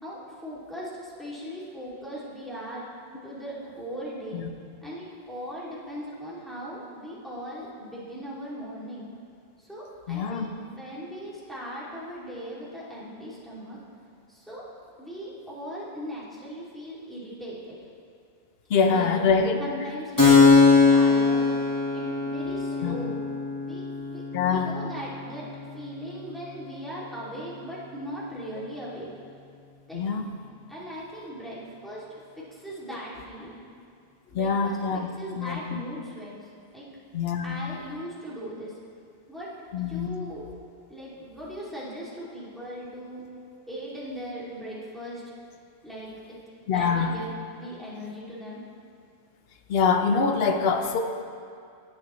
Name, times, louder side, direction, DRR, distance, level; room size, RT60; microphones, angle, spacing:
voice 1, 0.0-2.9 3.2-4.4 4.8-9.0 9.6-13.8 14.3-14.6 15.0-17.8 18.9-19.1 19.6-21.5 21.9-23.2 23.6-25.4 25.7-29.1 29.9-30.3 30.7-33.6 34.3-36.4 36.7-36.9 37.4-38.8 39.3-40.5 40.9-43.2 43.7-45.2 45.8-46.1 46.7-48.6, equal, ahead, -8 dB, 2.5 m, -39 dB
voice 2, 10.1-10.5 18.7-19.6 22.8-23.0 24.3-24.7 29.9-30.3 34.3-35.0 35.4-35.8 37.1-37.5 39.7-40.1 46.7-47.1 49.7-51.0, left 5 dB, 65° left, 5 dB, 1.0 m, -24 dB
Keyboard (musical), 20.2-27.5, left 4 dB, 15° left, 1.7 m, -22 dB
18.0 x 7.6 x 3.1 m, 2.3 s
omnidirectional pair, 1.1 m